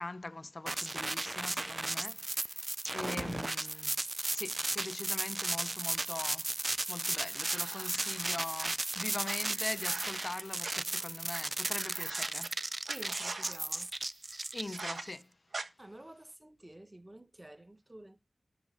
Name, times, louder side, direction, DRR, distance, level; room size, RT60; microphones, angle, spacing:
voice 1, 0.0-2.6 2.9-3.9 4.3-6.5 6.9-12.5 14.5-15.3, left 2 dB, 40° left, 0.5 m, -42 dB
sound 1, 0.7-15.1, right 2 dB, 30° right, 0.4 m, -35 dB
sound 2, 7.3-8.7 9.2-10.7 11.3-11.4 11.6-12.5 12.9-13.6 14.7-15.0 15.5-15.6, right 3 dB, 70° right, 1.4 m, -42 dB
voice 2, 12.9-13.9 15.8-18.2, right 1 dB, 15° right, 1.0 m, -50 dB
12.5 x 6.2 x 4.3 m
wide cardioid pair, 100°, 0 cm